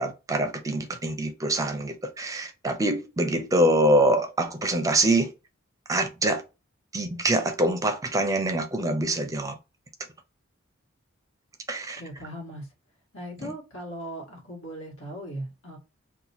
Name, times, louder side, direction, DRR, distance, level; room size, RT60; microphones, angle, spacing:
voice 1, 0.0-5.3 5.9-6.4 6.9-9.5 11.7-12.0, right 1 dB, 15° right, 0.5 m, -24 dB
voice 2, 12.0-12.7 13.1-15.8, right 1 dB, 70° left, 1.5 m, -38 dB
2.9 x 2.2 x 4.1 m
head